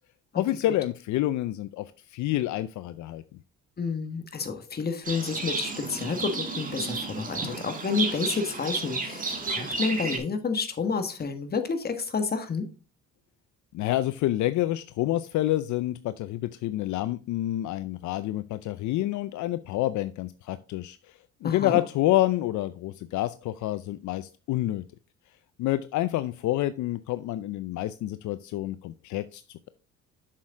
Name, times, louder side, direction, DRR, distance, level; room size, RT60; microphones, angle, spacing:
voice 1, 0.3-3.2 13.7-24.8 25.6-29.7, left 15 dB, 65° left, 13 dB, 0.6 m, -28 dB
voice 2, 3.8-12.7 21.4-21.8, left 5 dB, 30° left, 8 dB, 1.5 m, -30 dB
Livestock farm animals working animals, 5.1-10.2, right 3 dB, 25° right, 2.2 m, -32 dB
7.6 x 6.4 x 3.7 m, 0.33 s
cardioid pair, 105°, 31 cm